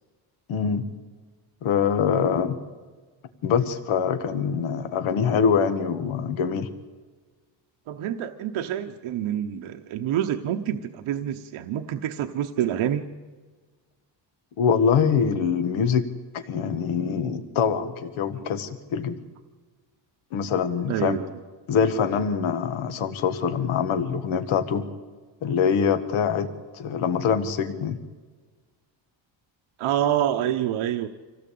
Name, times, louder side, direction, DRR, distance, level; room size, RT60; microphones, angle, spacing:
voice 1, 0.5-0.9 1.6-2.6 3.4-6.7 14.6-16.1 16.3-19.2 20.3-21.2 21.7-24.9 25.4-26.5 26.7-28.0, left 6 dB, 90° left, 10 dB, 1.6 m, -24 dB
voice 2, 7.9-13.0 20.9-21.3 29.8-31.1, right 10 dB, 85° right, 6 dB, 1.1 m, -27 dB
26.0 x 17.0 x 8.6 m, 1.4 s
cardioid pair, 165°, 47 cm